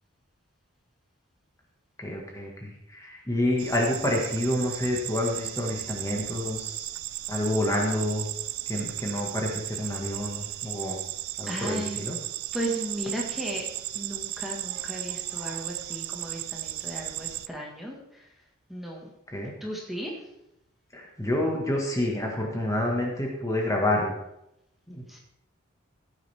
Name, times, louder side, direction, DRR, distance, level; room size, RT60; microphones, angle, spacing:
voice 1, 2.0-6.9 7.3-8.3 8.6-11.0 11.4-12.2 19.3-19.5 20.9-24.1 24.9-25.0, left 1 dB, 15° left, -1 dB, 1.7 m, -28 dB
sound 1, 3.6-17.5, right 16 dB, 90° right, 0.4 m, -35 dB
voice 2, 11.5-12.1 12.5-13.7 13.9-18.3 18.7-19.1 19.6-20.2 25.1-25.2, equal, ahead, -2 dB, 1.7 m, -35 dB
15.5 x 9.1 x 3.5 m, 0.84 s
head